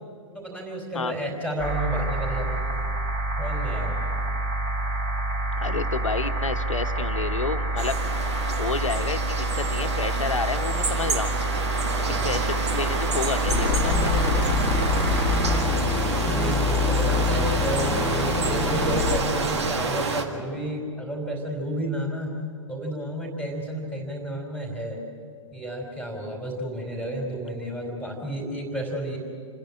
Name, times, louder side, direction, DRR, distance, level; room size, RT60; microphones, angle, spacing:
voice 1, 0.3-2.7 3.4-4.1 16.2-22.3 22.7-25.0 25.5-29.2, right 1 dB, 5° right, -2 dB, 4.1 m, -31 dB
sound 1, 1.6-15.6, right 2 dB, 35° right, 4.2 m, -28 dB
voice 2, 5.6-8.0 8.4-11.3 12.1-14.5, left 4 dB, 70° left, 8 dB, 1.2 m, -30 dB
sound 2, 7.8-20.2, right 4 dB, 55° right, 1.8 m, -29 dB
sound 3, 13.5-19.2, left 5 dB, 10° left, 1.5 m, -25 dB
27.5 x 10.5 x 9.9 m, 2.2 s
figure-of-eight pair, 115°, 17 cm